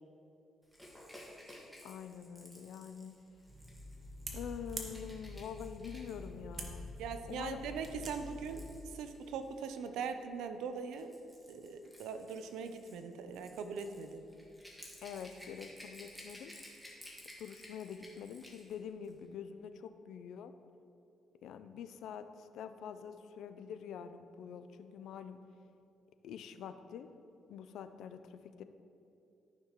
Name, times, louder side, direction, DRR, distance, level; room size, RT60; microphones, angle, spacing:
Rattle / Rattle (instrument), 0.7-9.7 10.7-18.8 19.0-19.2, left 1 dB, ahead, 1.6 m, -56 dB
voice 1, 1.8-3.1 4.3-6.9 7.3-7.7 15.0-16.5 17.4-20.5 21.4-25.4 26.2-27.1 27.5-28.6, left 7 dB, 80° left, 10 dB, 0.4 m, -46 dB
sound 1, 3.5-8.8, equal, 45° right, 1.2 m, -46 dB
voice 2, 7.0-11.1 11.5-14.2, right 5 dB, 90° right, 8 dB, 0.6 m, -41 dB
13.5 x 5.8 x 3.0 m, 2.8 s
cardioid pair, 90°, 0 cm